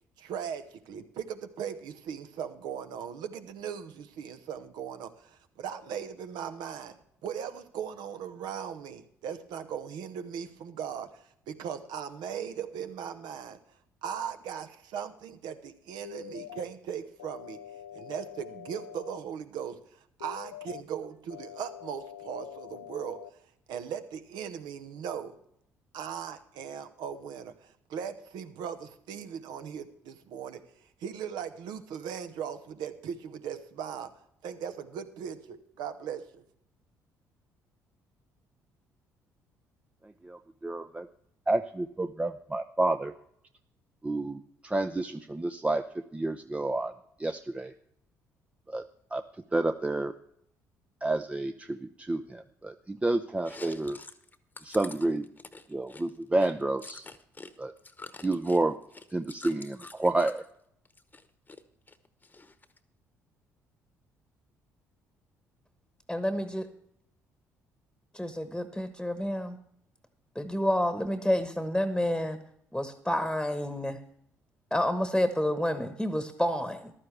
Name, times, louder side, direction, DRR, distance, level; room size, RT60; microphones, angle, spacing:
voice 1, 0.2-7.0 7.2-13.6 14.0-17.6 17.9-23.2 23.7-25.3 25.9-30.6 31.0-34.1 34.4-36.4, right 8 dB, 65° right, 9 dB, 1.0 m, -38 dB
sound 1, 16.0-16.6 17.2-19.2 20.2-20.8 21.3-23.3, left 11 dB, 90° left, 0.4 m, -45 dB
voice 2, 40.0-41.1 41.5-43.1 44.0-46.9 47.2-47.7 48.7-48.8 49.1-49.2 49.5-50.1 51.0-54.0 54.6-55.3 55.7-57.1 57.6-57.7 58.2-58.8 59.1-60.4, right 2 dB, 15° right, 8 dB, 0.6 m, -30 dB
Chewing mastication, 53.4-57.5 57.8-60.5 60.9-61.6 61.9-62.8, left 3 dB, 20° left, 1.1 m, -47 dB
voice 3, 66.1-66.7 68.1-69.6 70.3-72.4 72.7-74.0 74.7-76.9, left 1 dB, 5° left, 9 dB, 1.3 m, -29 dB
14.5 x 12.0 x 3.3 m, 0.70 s
hypercardioid pair, 50°, 8 cm